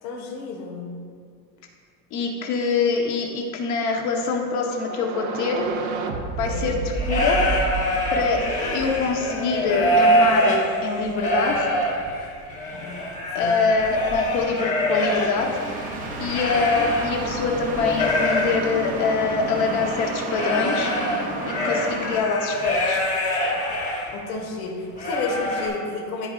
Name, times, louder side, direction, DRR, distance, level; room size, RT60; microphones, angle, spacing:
voice 1, 0.0-0.9 6.5-6.7 13.3-13.6 24.1-26.3, left 4 dB, 85° left, -1 dB, 1.6 m, -31 dB
voice 2, 2.1-5.7 6.4-6.8 7.1-7.4 8.1-11.7 13.3-15.5 16.2-20.9 21.5-23.0, left 4 dB, 45° left, 1 dB, 1.1 m, -24 dB
sound 1, 4.7-9.6, right 4 dB, 90° right, 0.9 m, -30 dB
sound 2, 6.9-17.4 17.7-24.1 24.5-24.6 25.0-25.7, equal, 15° left, 1.0 m, -25 dB
sound 3, 15.4-22.2, right 2 dB, 20° right, 0.5 m, -31 dB
14.0 x 4.7 x 2.4 m, 2.2 s
cardioid pair, 175°, 41 cm